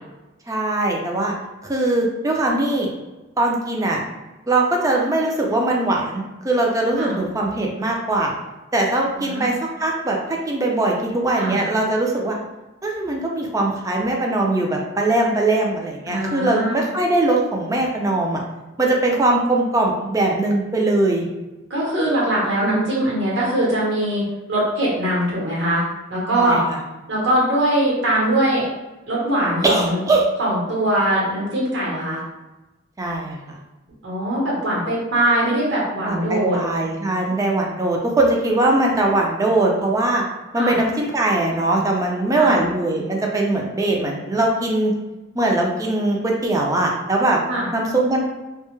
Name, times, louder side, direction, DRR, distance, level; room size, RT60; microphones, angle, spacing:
voice 1, 0.5-1.3 1.6-2.9 3.4-4.0 4.5-8.3 8.7-12.4 12.8-18.4 18.8-21.3 26.3-26.8 29.6-30.2 33.0-33.6 36.0-40.2 40.5-44.9 45.3-47.4 47.7-48.2, right 2 dB, 15° right, -1 dB, 0.4 m, -21 dB
voice 2, 9.2-9.5 11.4-11.5 16.1-16.8 21.7-25.8 26.1-26.6 27.1-28.7 29.1-30.0 30.4-32.2 34.0-36.6 40.5-40.7 42.4-42.6 47.5-47.7, right 1 dB, 65° right, -5 dB, 1.0 m, -21 dB
2.2 x 2.0 x 2.9 m, 1.1 s
head